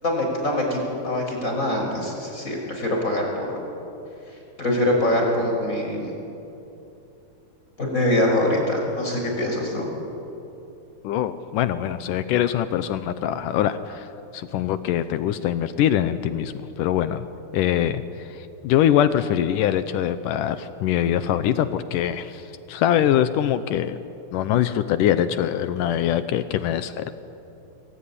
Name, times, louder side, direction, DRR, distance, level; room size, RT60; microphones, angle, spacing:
voice 1, 0.0-3.6 4.6-6.1 7.8-9.9, left 1 dB, 20° left, 0 dB, 5.8 m, -24 dB
voice 2, 11.0-14.1 14.3-17.3 17.5-24.0 24.3-27.1, left 10 dB, 75° left, 12 dB, 2.0 m, -23 dB
27.5 x 21.0 x 9.9 m, 2.9 s
omnidirectional pair, 4.6 m